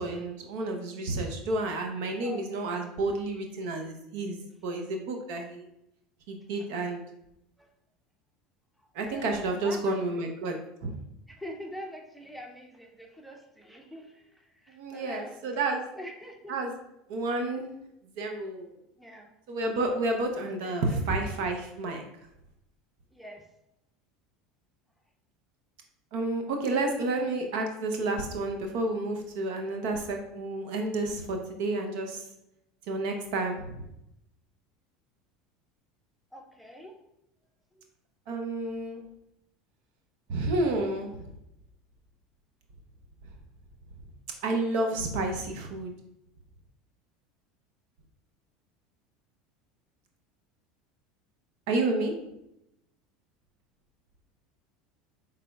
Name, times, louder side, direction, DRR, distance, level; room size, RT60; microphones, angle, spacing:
voice 1, 0.0-4.4 4.6-5.7 6.3-7.0 8.9-11.0 14.7-15.8 16.5-16.7 17.1-17.7 18.1-18.7 19.5-22.0 26.1-32.2 32.9-33.8 38.3-39.0 40.3-41.3 44.4-45.9 51.7-52.1, right 2 dB, 70° right, 3 dB, 0.7 m, -30 dB
voice 2, 9.1-10.3 11.3-15.6 15.9-16.6 19.0-19.3 20.6-21.3 23.1-23.4 36.3-36.9, equal, ahead, 1 dB, 0.7 m, -45 dB
4.9 x 3.4 x 2.3 m, 0.82 s
hypercardioid pair, 90°, 0 cm